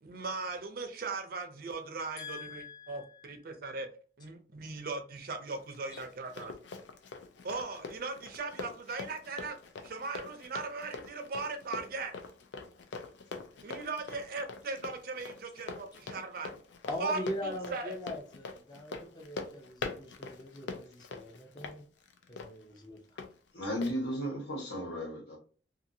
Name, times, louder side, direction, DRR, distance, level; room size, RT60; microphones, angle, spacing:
voice 1, 0.0-3.9 4.2-6.5 7.4-9.6 9.8-12.1 13.6-16.5 16.9-18.0, right 3 dB, 55° right, 0.5 m, -38 dB
voice 2, 2.2-3.3 16.9-21.8 22.3-23.0, left 1 dB, 25° left, 0.6 m, -41 dB
Run, 5.5-23.3 23.8-24.0, left 4 dB, 85° left, 0.5 m, -44 dB
voice 3, 23.5-25.4, equal, 70° left, 1.3 m, -35 dB
2.6 x 2.5 x 2.6 m
head